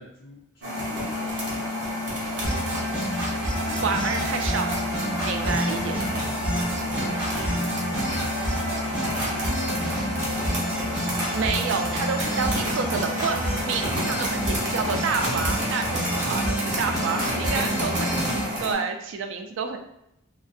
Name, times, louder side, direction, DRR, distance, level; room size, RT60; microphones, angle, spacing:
voice 1, 0.0-4.3 5.3-9.5 12.2-12.8 14.0-14.4 17.0-17.6, left 1 dB, 65° left, -7 dB, 0.6 m, -43 dB
sound 1, 0.6-18.7, left 1 dB, 55° right, 0.7 m, -30 dB
sound 2, 2.4-18.4, right 1 dB, 10° right, 1.0 m, -29 dB
voice 2, 3.8-4.8 5.2-5.9 7.3-7.6 11.1-13.4 13.6-19.8, right 5 dB, 75° right, 5 dB, 0.3 m, -29 dB
2.6 x 2.1 x 2.4 m, 0.79 s
head